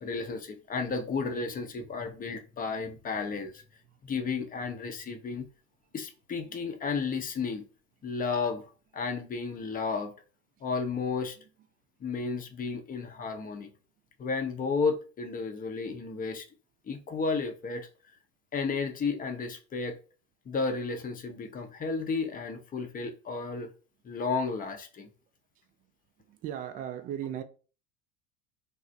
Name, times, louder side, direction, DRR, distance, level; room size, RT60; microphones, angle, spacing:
voice 1, 0.0-3.6 4.0-5.5 5.9-7.6 8.0-8.7 8.9-10.1 10.6-11.4 12.0-13.7 14.2-16.5 16.9-17.9 18.5-20.0 20.5-23.7 24.0-25.1, left 4 dB, 20° left, 0.6 m, -32 dB
voice 2, 26.3-27.4, right 10 dB, 20° right, 0.3 m, -37 dB
3.2 x 2.1 x 3.7 m
figure-of-eight pair, 75°, 42 cm